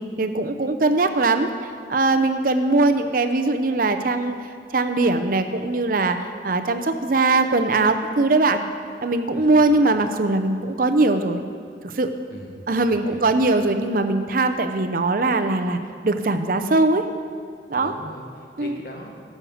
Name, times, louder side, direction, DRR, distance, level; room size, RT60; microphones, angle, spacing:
voice 1, 0.2-1.5 1.9-4.3 4.7-6.2 6.4-8.6 9.0-11.4 11.8-12.1 12.7-15.8 16.0-17.1 17.7-17.9 18.6-18.8, right 2 dB, 50° right, 8 dB, 0.6 m, -20 dB
voice 2, 12.3-13.4 17.7-19.1, left 1 dB, 55° left, 0 dB, 1.8 m, -40 dB
12.5 x 6.5 x 7.8 m, 2.1 s
head